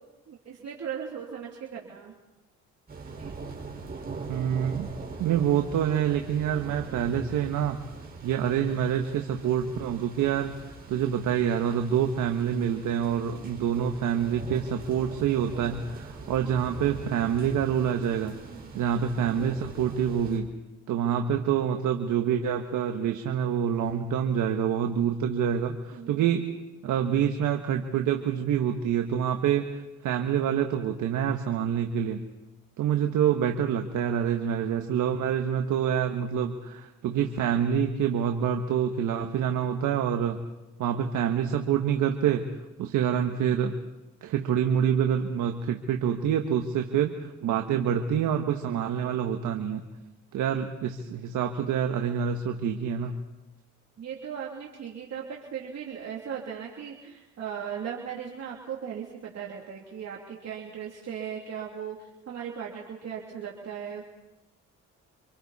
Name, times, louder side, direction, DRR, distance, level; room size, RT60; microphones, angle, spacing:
voice 1, 0.3-2.1 3.2-3.3 18.3-18.7 25.9-26.2 54.0-64.0, right 8 dB, 60° right, -2 dB, 3.1 m, -38 dB
sound 1, 2.9-20.4, right 4 dB, 30° right, 5.2 m, -42 dB
voice 2, 4.3-4.9 5.2-7.8 8.2-10.5 10.9-18.4 18.7-20.5 20.9-26.5 26.8-32.2 32.8-40.4 40.8-43.7 44.2-49.9 50.3-53.2, right 8 dB, 80° right, 4 dB, 1.5 m, -27 dB
29.0 x 26.0 x 4.3 m, 1.0 s
cardioid pair, 90°, 30 cm